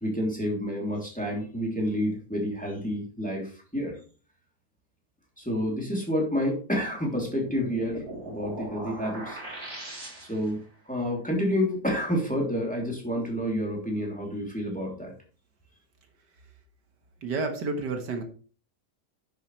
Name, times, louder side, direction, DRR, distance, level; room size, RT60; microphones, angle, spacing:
voice 1, 0.0-4.0 5.4-9.4 10.3-10.6 10.9-15.1, equal, 5° left, -1 dB, 2.9 m, -29 dB
sound 1, 7.1-10.6, right 1 dB, 35° right, 3.7 m, -40 dB
voice 2, 17.2-18.2, right 3 dB, 80° right, 5 dB, 2.0 m, -30 dB
10.0 x 7.8 x 3.2 m, 0.37 s
omnidirectional pair, 1.8 m